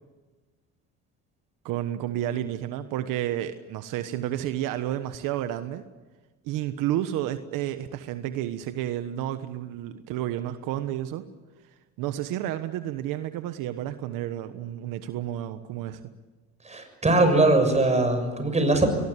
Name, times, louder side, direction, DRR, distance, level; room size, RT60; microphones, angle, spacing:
voice 1, 1.6-5.8 6.4-11.2 12.0-16.0, right 12 dB, 80° right, 10 dB, 1.3 m, -31 dB
voice 2, 16.6-18.9, right 2 dB, 20° right, 6 dB, 6.7 m, -21 dB
23.5 x 20.0 x 8.4 m, 1.2 s
supercardioid pair, 95°, 32 cm